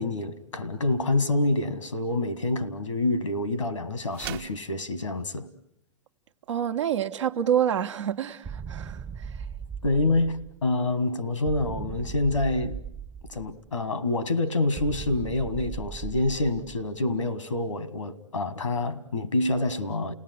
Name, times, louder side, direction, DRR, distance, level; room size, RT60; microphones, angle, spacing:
voice 1, 0.0-5.5 9.8-12.8 13.3-20.1, left 2 dB, 85° left, 1.7 m, -27 dB
sound 1, 4.1-4.6, right 12 dB, 50° right, 1.1 m, -37 dB
voice 2, 6.5-9.3, right 9 dB, 70° right, 1.2 m, -27 dB
sound 2, 8.4-10.7 11.5-13.8 14.8-17.0, right 7 dB, 25° right, 0.9 m, -38 dB
29.5 x 18.0 x 9.3 m
figure-of-eight pair, 100°, 16 cm